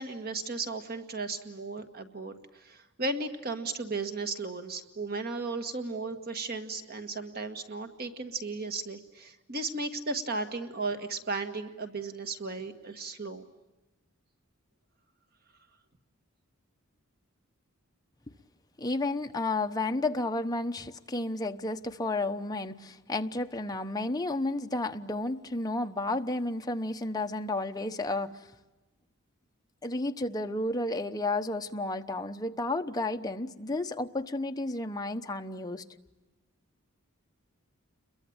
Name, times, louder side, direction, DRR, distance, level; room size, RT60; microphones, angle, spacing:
voice 1, 0.0-2.3 2.6-13.4, right 3 dB, 45° right, 1.8 m, -35 dB
voice 2, 18.8-28.4 29.8-35.8, left 2 dB, 20° left, 1.0 m, -32 dB
29.5 x 22.5 x 8.8 m
head